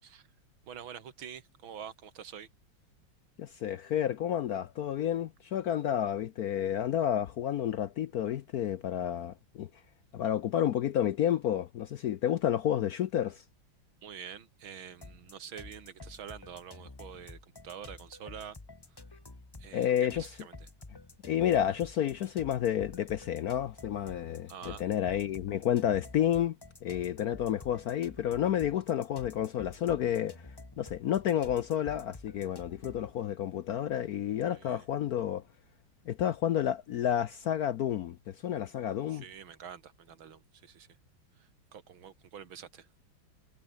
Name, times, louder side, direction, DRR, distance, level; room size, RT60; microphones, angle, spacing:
voice 1, 0.7-2.5 14.0-18.6 18.9-19.0 19.6-20.6 24.5-24.8 34.5-34.9 39.1-40.9 41.4-42.9, right 8 dB, 80° right, 2.5 m, -46 dB
voice 2, 3.4-9.7 10.1-13.4 19.7-20.3 21.2-26.6 26.8-30.5 30.8-35.4 36.1-39.2, left 10 dB, 65° left, 0.9 m, -30 dB
sound 1, 15.0-33.1, left 2 dB, 15° left, 1.0 m, -50 dB
omnidirectional pair, 2.2 m